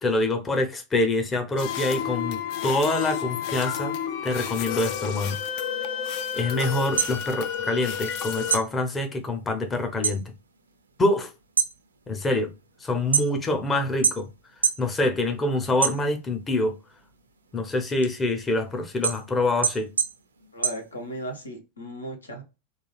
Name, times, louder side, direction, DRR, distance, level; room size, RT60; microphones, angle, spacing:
voice 1, 0.0-3.9 4.2-5.4 6.3-10.3 11.0-11.3 12.1-12.5 12.8-14.3 14.8-16.8 17.5-19.9, left 2 dB, 15° left, 0.6 m, -25 dB
sound 1, 1.6-8.6, left 8 dB, 45° left, 0.3 m, -31 dB
sound 2, 6.9-8.2 8.5-10.2 10.6-11.0 11.4-13.6 14.0-14.9 15.3-16.5 16.9-21.4, right 7 dB, 75° right, 0.4 m, -27 dB
voice 2, 20.5-22.4, equal, 75° left, 0.8 m, -36 dB
3.1 x 2.4 x 2.2 m
figure-of-eight pair, 90°, 0 cm